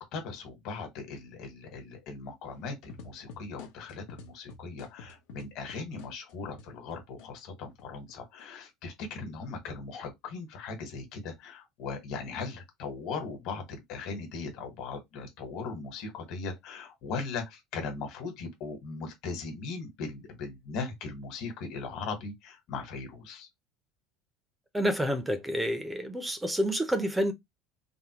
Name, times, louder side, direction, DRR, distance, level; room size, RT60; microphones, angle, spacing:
voice 1, 0.1-23.5, left 4 dB, 50° left, 1.3 m, -39 dB
sound 1, 2.9-7.3 7.7-8.4, left 5 dB, 85° left, 0.8 m, -48 dB
voice 2, 24.7-27.3, equal, 5° right, 0.5 m, -28 dB
3.5 x 2.1 x 2.8 m
cardioid pair, 160°, 0 cm